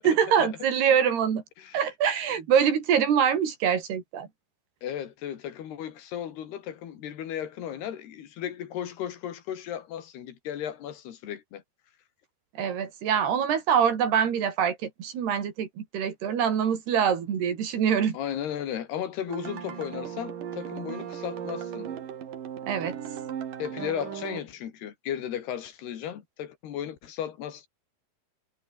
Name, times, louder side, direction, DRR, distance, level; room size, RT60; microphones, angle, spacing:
voice 1, 0.0-1.4 1.7-4.3 12.6-18.2 22.7-23.0, right 8 dB, 85° right, 5.4 m, -24 dB
voice 2, 4.8-11.6 18.1-21.9 23.6-27.7, left 10 dB, 80° left, 4.4 m, -35 dB
sound 1, 19.3-24.4, right 9 dB, 60° right, 3.8 m, -37 dB
omnidirectional pair, 4.5 m